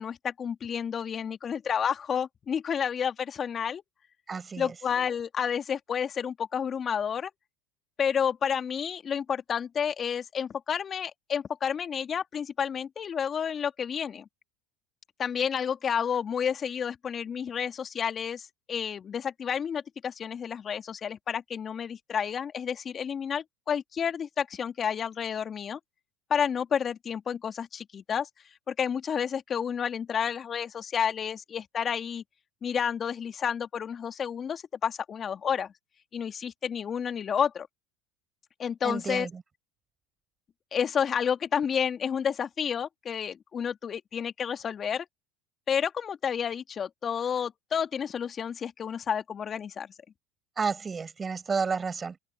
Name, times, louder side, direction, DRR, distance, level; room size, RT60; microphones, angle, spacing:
voice 1, 0.0-3.8 4.6-7.3 8.0-14.3 15.2-25.8 26.3-28.3 28.7-32.2 32.6-35.7 36.1-37.7 38.6-39.3 40.7-45.1 45.7-49.9, left 7 dB, 35° left, 2.4 m, -30 dB
voice 2, 4.3-4.7 38.8-39.3 50.6-52.2, right 5 dB, 25° right, 5.3 m, -31 dB
open air
hypercardioid pair, 80°, 0 cm